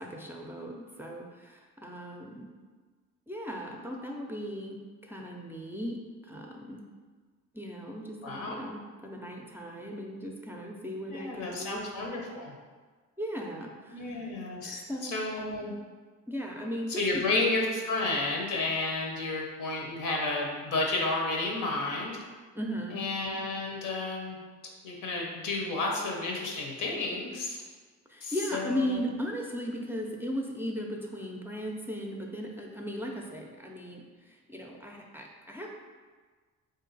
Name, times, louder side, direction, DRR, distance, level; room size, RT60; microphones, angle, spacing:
voice 1, 0.0-2.5 3.3-6.8 7.5-11.8 13.2-14.3 14.6-15.5 16.3-17.4 22.5-23.0 28.1-35.7, equal, 5° right, 0 dB, 0.5 m, -37 dB
voice 2, 8.2-8.6 11.1-12.5 13.9-15.7 16.9-22.2 22.9-24.4 24.8-27.6 28.2-29.0, left 3 dB, 80° left, -1 dB, 0.9 m, -31 dB
3.7 x 2.8 x 3.9 m, 1.4 s
cardioid pair, 90°, 30 cm